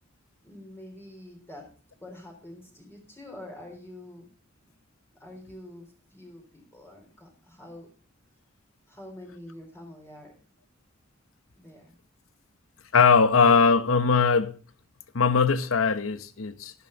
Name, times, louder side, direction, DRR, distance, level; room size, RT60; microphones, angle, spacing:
voice 1, 0.4-1.7 2.0-4.3 5.1-7.9 8.9-10.3 11.6-11.9, left 1 dB, 10° left, 3.9 m, -46 dB
voice 2, 12.9-14.5 15.1-16.7, left 5 dB, 75° left, 0.9 m, -20 dB
12.0 x 11.5 x 4.0 m
head